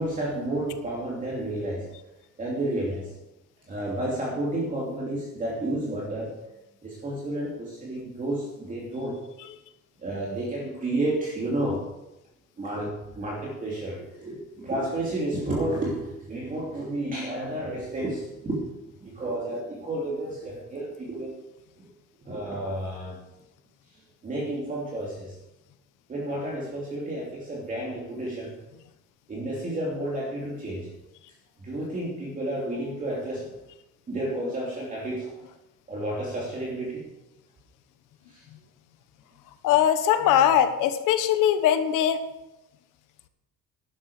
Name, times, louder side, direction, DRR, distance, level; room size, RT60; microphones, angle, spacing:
voice 1, 0.0-1.9 2.4-3.1 3.7-6.3 6.8-9.2 10.0-11.9 12.6-18.6 19.0-21.3 21.8-21.9 22.2-23.2 24.2-25.4 26.1-28.6 29.3-30.9 31.6-33.5 34.1-35.3 35.9-37.0 38.3-38.4, right 1 dB, 25° right, -4 dB, 2.9 m, -31 dB
voice 2, 39.6-42.2, left 10 dB, 85° left, 10 dB, 1.4 m, -21 dB
13.0 x 11.5 x 5.0 m, 0.92 s
cardioid pair, 165°, 31 cm